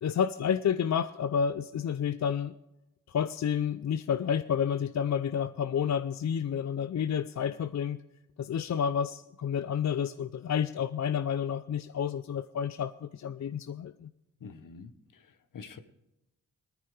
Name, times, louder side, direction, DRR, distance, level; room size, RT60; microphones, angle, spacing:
voice 1, 0.0-2.5 3.1-8.0 8.4-14.1, left 8 dB, 55° left, 13 dB, 0.6 m, -30 dB
voice 2, 14.4-15.8, left 5 dB, 75° left, 11 dB, 1.2 m, -47 dB
19.0 x 14.0 x 3.3 m, 0.91 s
cardioid pair, 55°, 32 cm